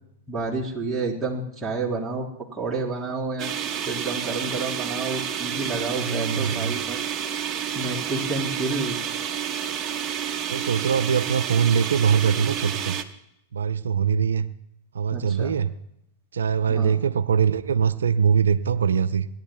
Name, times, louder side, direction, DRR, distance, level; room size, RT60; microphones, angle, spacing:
voice 1, 0.3-2.3 2.5-7.0 7.8-9.0 15.1-15.5 16.7-17.0, right 3 dB, 10° right, -5 dB, 3.6 m, -30 dB
sound 1, 3.4-13.0, right 8 dB, 30° right, 1.1 m, -30 dB
voice 2, 6.0-6.7 10.5-13.0 13.5-14.5 14.9-15.7 16.3-19.3, right 7 dB, 85° right, 14 dB, 0.4 m, -22 dB
29.5 x 11.0 x 2.2 m, 0.79 s
hypercardioid pair, 110°, 0 cm